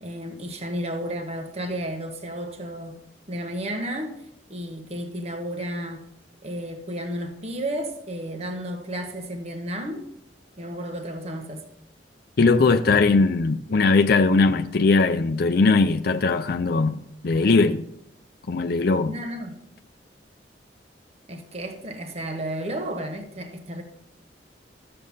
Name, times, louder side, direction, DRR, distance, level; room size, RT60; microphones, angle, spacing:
voice 1, 0.0-3.0 3.3-4.2 4.5-6.0 6.4-10.1 10.6-11.7 19.1-19.6 21.3-23.8, right 1 dB, 35° right, 1.2 m, -32 dB
voice 2, 12.4-17.8 18.5-19.1, left 3 dB, 60° left, 0.5 m, -20 dB
12.5 x 7.7 x 5.5 m
head